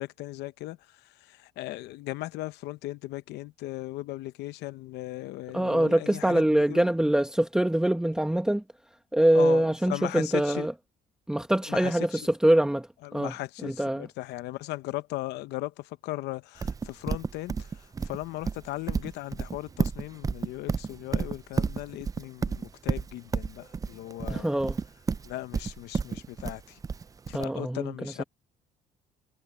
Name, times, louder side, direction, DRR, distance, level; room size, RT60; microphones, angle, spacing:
voice 1, 0.0-6.8 9.3-10.7 11.7-12.2 13.0-24.5 25.2-26.8 27.3-28.2, left 17 dB, 85° left, 0.8 m, -37 dB
voice 2, 5.5-8.6 9.1-10.7 11.3-13.3 13.6-14.1 24.3-24.8 27.3-28.2, right 1 dB, 5° right, 1.1 m, -24 dB
Livestock farm animals working animals, 16.6-27.4, right 5 dB, 20° right, 0.4 m, -31 dB
cardioid pair, 110°, 17 cm